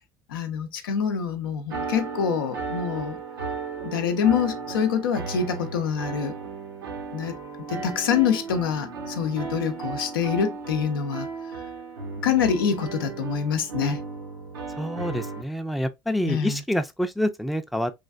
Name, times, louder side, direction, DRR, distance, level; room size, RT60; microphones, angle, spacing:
voice 1, 0.3-3.2 3.8-6.4 7.1-7.3 7.7-11.3 12.2-14.0 16.2-16.6, left 7 dB, 90° left, 0.5 m, -25 dB
sound 1, 1.7-15.4, right 4 dB, 90° right, 0.7 m, -35 dB
voice 2, 14.8-17.9, equal, ahead, 0.3 m, -27 dB
3.2 x 2.4 x 2.3 m
hypercardioid pair, 75°, 11 cm